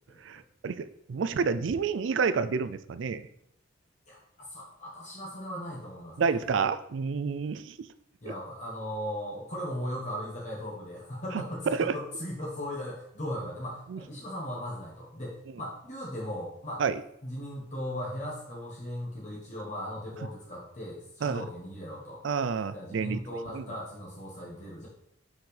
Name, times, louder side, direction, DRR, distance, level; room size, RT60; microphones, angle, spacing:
voice 1, 0.2-3.2 6.2-7.8 11.3-11.4 11.7-11.9 13.9-14.0 16.8-17.0 21.2-21.5 22.2-23.2 23.5-23.6, right 5 dB, 65° right, 13 dB, 0.4 m, -29 dB
voice 2, 4.5-6.4 8.2-16.8 17.2-22.2 22.7-24.9, equal, 35° left, -5 dB, 1.5 m, -37 dB
5.9 x 5.6 x 3.3 m, 0.73 s
head